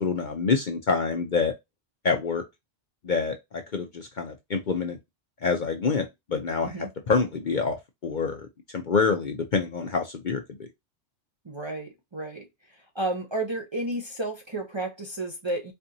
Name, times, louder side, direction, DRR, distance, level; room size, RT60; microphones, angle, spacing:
voice 1, 0.0-1.5 2.0-2.4 3.0-5.0 5.4-7.8 8.0-8.5 8.7-10.7, left 5 dB, 50° left, 0.7 m, -26 dB
voice 2, 11.4-12.4 12.9-15.7, right 2 dB, 30° right, 0.6 m, -32 dB
4.4 x 2.5 x 2.7 m
omnidirectional pair, 1.3 m